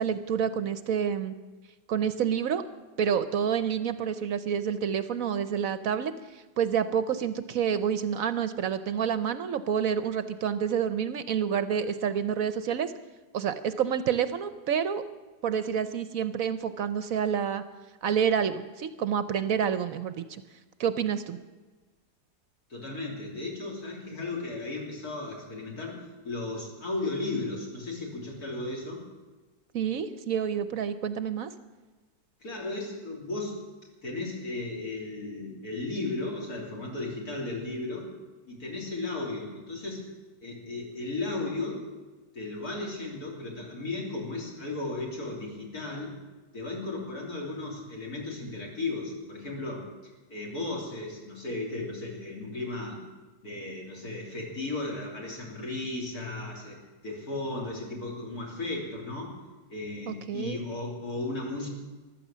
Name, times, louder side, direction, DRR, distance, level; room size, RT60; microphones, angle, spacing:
voice 1, 0.0-1.3 1.9-2.6 3.0-6.1 6.6-12.9 13.3-15.0 15.4-17.6 18.0-20.4 20.8-21.4 29.7-31.5 60.1-60.6, right 8 dB, 65° right, 12 dB, 0.9 m, -28 dB
voice 2, 22.7-26.0 26.2-29.0 32.4-33.6 34.0-38.1 38.5-40.0 40.4-41.8 42.3-46.1 46.5-53.0 53.4-59.3 59.7-61.7, left 2 dB, 60° left, -2 dB, 3.9 m, -35 dB
14.5 x 12.5 x 7.4 m, 1.3 s
omnidirectional pair, 1.8 m